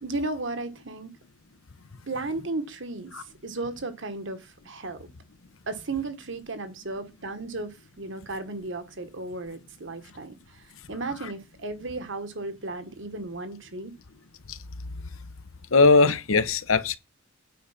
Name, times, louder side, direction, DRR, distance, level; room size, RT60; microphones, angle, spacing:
voice 1, 0.0-1.1 2.1-5.1 5.7-13.9, right 3 dB, 60° right, 1.5 m, -35 dB
voice 2, 15.7-17.0, left 3 dB, 80° left, 1.0 m, -19 dB
9.3 x 5.1 x 5.8 m
head